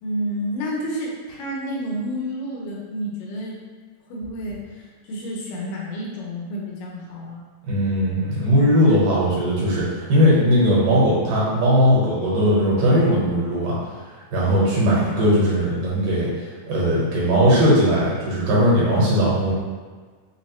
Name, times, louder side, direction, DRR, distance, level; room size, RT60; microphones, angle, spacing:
voice 1, 0.0-3.6 4.1-7.4, equal, 85° left, -3 dB, 2.5 m, -30 dB
voice 2, 7.7-13.8 14.3-16.3 16.7-19.5, equal, 80° right, -7 dB, 2.9 m, -18 dB
6.0 x 2.0 x 3.0 m, 1.5 s
omnidirectional pair, 3.7 m